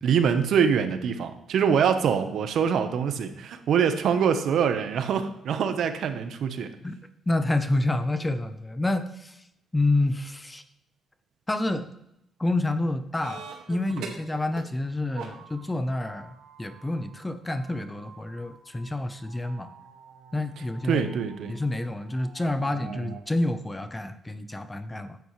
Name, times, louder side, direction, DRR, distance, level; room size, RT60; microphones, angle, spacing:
voice 1, 0.0-6.7 20.9-21.6, right 7 dB, 70° right, 8 dB, 1.0 m, -24 dB
voice 2, 7.3-9.4 9.7-10.6 11.5-11.9 12.4-19.7 20.3-21.0 21.5-25.2, left 2 dB, 15° left, 10 dB, 0.6 m, -28 dB
sound 1, 13.2-14.6 14.9-23.2, right 6 dB, 85° right, 1.8 m, -45 dB
10.5 x 8.4 x 3.2 m, 0.84 s
cardioid pair, 90°, 0 cm